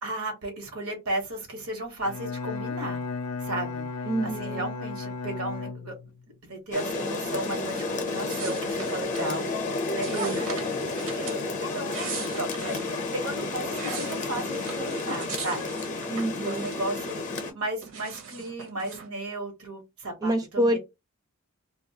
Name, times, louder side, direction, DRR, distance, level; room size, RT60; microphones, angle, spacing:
voice 1, 0.0-3.0 3.4-3.9 4.2-6.0 6.4-9.5 9.9-16.1 16.4-17.2 17.5-20.8, right 1 dB, 80° right, 1.1 m, -35 dB
Bowed string instrument, 2.0-6.3, left 4 dB, 85° left, 0.4 m, -34 dB
voice 2, 4.1-4.7 10.1-10.5 16.1-16.7 20.2-20.8, right 1 dB, 15° right, 0.3 m, -27 dB
Rain, 6.7-17.5, left 3 dB, 35° left, 0.5 m, -31 dB
sound 1, 8.3-9.4 10.0-11.4 11.8-12.9 13.4-17.0 17.3-19.1, right 6 dB, 60° right, 0.7 m, -40 dB
2.2 x 2.2 x 2.7 m
head